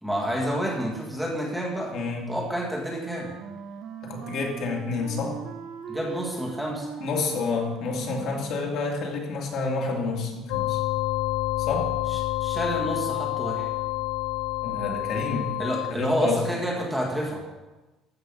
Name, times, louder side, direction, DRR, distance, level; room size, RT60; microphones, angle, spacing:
voice 1, 0.0-1.9 2.3-3.3 5.9-6.9 12.1-13.7 15.6-17.4, equal, ahead, -2 dB, 1.5 m, -29 dB
voice 2, 1.9-2.3 4.0-5.4 7.0-10.8 11.6-11.9 14.6-15.5 15.9-16.4, left 4 dB, 45° left, 0 dB, 2.3 m, -29 dB
Wind instrument woodwind instrument, 2.9-9.2, right 7 dB, 40° right, 0.8 m, -40 dB
sound 1, 10.5-15.9, left 18 dB, 75° left, 0.5 m, -28 dB
13.5 x 7.7 x 5.3 m, 1.1 s
cardioid pair, 175°, 0 cm